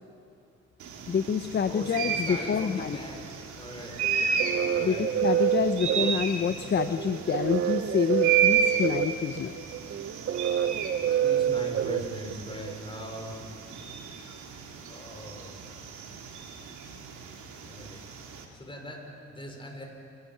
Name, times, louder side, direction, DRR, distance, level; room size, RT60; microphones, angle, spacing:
sound 1, 0.8-18.4, right 7 dB, 70° right, 2.7 m, -33 dB
voice 1, 1.1-3.0 4.8-9.7, left 7 dB, 35° left, 10 dB, 0.7 m, -27 dB
voice 2, 1.7-3.2 3.6-4.0 4.7-5.1 11.2-13.3 14.9-15.6 17.7-18.0 18.6-19.8, equal, 15° left, 1 dB, 5.2 m, -40 dB
sound 2, 4.0-12.7, right 10 dB, 45° right, 0.8 m, -28 dB
29.5 x 11.5 x 9.4 m, 2.6 s
cardioid pair, 90°, 30 cm